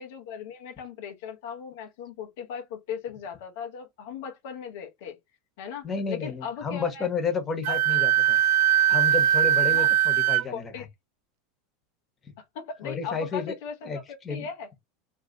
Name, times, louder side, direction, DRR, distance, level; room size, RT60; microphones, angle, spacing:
voice 1, 0.0-5.2 5.6-7.1 7.7-7.8 9.7-9.9 10.5-10.9 12.4-13.9 14.3-14.7, left 7 dB, 70° left, 0.8 m, -38 dB
voice 2, 5.8-8.4 8.9-10.8 12.8-13.5 13.8-14.5, left 5 dB, 25° left, 1.1 m, -31 dB
Wind instrument woodwind instrument, 7.6-10.4, right 11 dB, 65° right, 0.3 m, -21 dB
3.0 x 2.6 x 2.9 m
hypercardioid pair, 105°, 0 cm